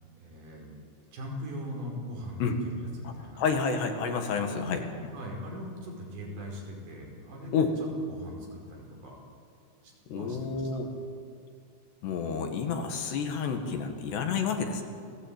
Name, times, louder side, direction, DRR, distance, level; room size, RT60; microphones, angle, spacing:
voice 1, 0.2-0.7 1.1-3.4 4.4-4.9 5.1-9.2 9.8-10.7, left 1 dB, 70° right, -1 dB, 7.1 m, -40 dB
voice 2, 3.4-4.8 7.5-7.7 10.1-10.9 12.0-14.8, left 5 dB, 70° left, 4 dB, 3.9 m, -29 dB
28.5 x 18.0 x 8.9 m, 2.3 s
omnidirectional pair, 5.3 m